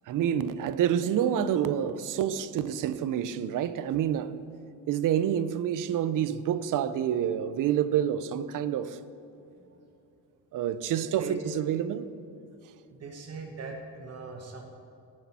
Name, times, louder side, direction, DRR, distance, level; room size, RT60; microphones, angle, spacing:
voice 1, 0.1-4.4 4.9-9.0 10.5-12.1, right 9 dB, 60° right, 0.6 m, -28 dB
voice 2, 11.0-11.5 12.9-14.7, right 3 dB, 45° right, 1.2 m, -41 dB
18.0 x 6.4 x 4.2 m
cardioid pair, 150°, 37 cm